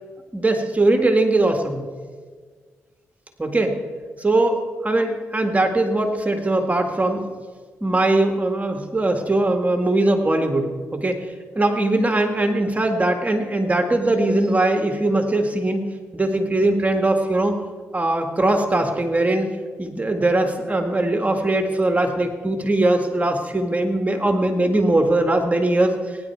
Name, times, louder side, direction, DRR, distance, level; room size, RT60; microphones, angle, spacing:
voice 1, 0.3-1.8 3.4-3.8 4.2-7.3 7.8-11.2 11.6-15.8 16.1-17.6 17.9-19.5 19.8-26.2, right 2 dB, 25° right, 4 dB, 2.0 m, -20 dB
22.5 x 10.5 x 4.7 m, 1.5 s
supercardioid pair, 50°, 6 cm